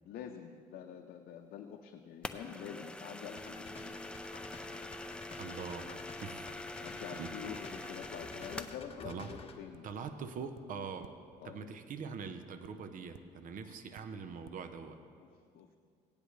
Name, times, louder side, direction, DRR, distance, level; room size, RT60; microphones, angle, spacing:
voice 1, 0.0-3.9 6.5-10.0 11.4-11.7 13.6-13.7 15.2-15.8, left 8 dB, 65° left, 4 dB, 0.6 m, -47 dB
sound 1, 2.2-8.8, left 2 dB, 5° left, 0.5 m, -44 dB
sound 2, 3.4-9.6, left 4 dB, 35° left, 0.9 m, -51 dB
voice 2, 5.4-5.9 6.2-6.4 7.2-7.3 9.0-9.4 9.8-11.1 11.4-15.0, right 5 dB, 50° right, 9 dB, 0.8 m, -43 dB
sound 3, 9.2-9.3 9.7-10.2 10.5-10.6 11.0-11.1 12.6-12.7 13.1-13.2 13.6-13.7 13.9-14.1 14.4-14.6, right 13 dB, 85° right, 0.4 m, -55 dB
17.0 x 10.0 x 3.2 m, 2.2 s
cardioid pair, 110°, 17 cm